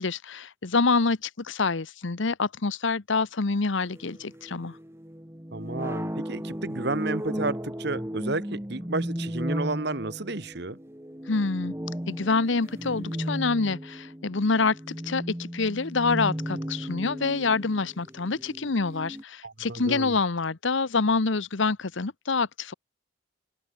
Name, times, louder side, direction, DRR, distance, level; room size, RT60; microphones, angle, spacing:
voice 1, 0.0-4.8 11.3-11.7 12.1-22.7, left 4 dB, 70° left, 0.9 m, -26 dB
sound 1, 3.9-19.2, equal, 10° right, 1.9 m, -35 dB
voice 2, 5.5-10.8 19.4-20.2, right 2 dB, 55° right, 1.5 m, -32 dB
open air
head